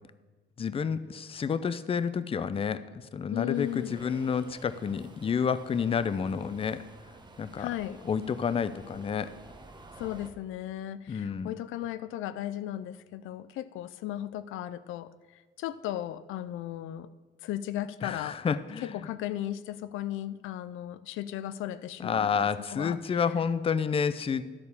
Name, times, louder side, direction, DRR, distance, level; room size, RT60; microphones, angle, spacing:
voice 1, 0.6-6.8 7.4-7.7 8.0-9.3 11.1-11.5 18.0-19.1 22.0-24.4, left 6 dB, 30° left, 15 dB, 0.4 m, -30 dB
voice 2, 3.3-4.0 7.6-8.0 10.0-17.1 17.4-18.4 18.8-23.2, left 12 dB, 85° left, 15 dB, 0.4 m, -36 dB
Subway metro underground, 3.5-10.3, right 3 dB, 20° right, 0.9 m, -51 dB
12.0 x 4.3 x 6.9 m, 1.4 s
cardioid pair, 90°, 20 cm